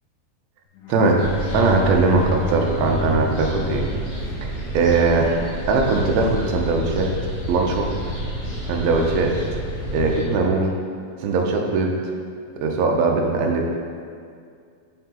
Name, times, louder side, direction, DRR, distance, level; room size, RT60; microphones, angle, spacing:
Bowed string instrument, 0.8-4.6, right 1 dB, 80° left, 2.2 m, -30 dB
voice 1, 0.9-1.2 1.5-3.9 4.7-5.3 5.7-7.1 7.5-7.9 8.6-9.4 9.9-10.7 11.2-12.0 12.6-13.7, right 3 dB, 85° right, 1 dB, 2.6 m, -20 dB
sound 1, 1.2-10.2, equal, 50° left, 2.1 m, -29 dB
6.7 x 5.7 x 2.9 m, 2.2 s
omnidirectional pair, 4.2 m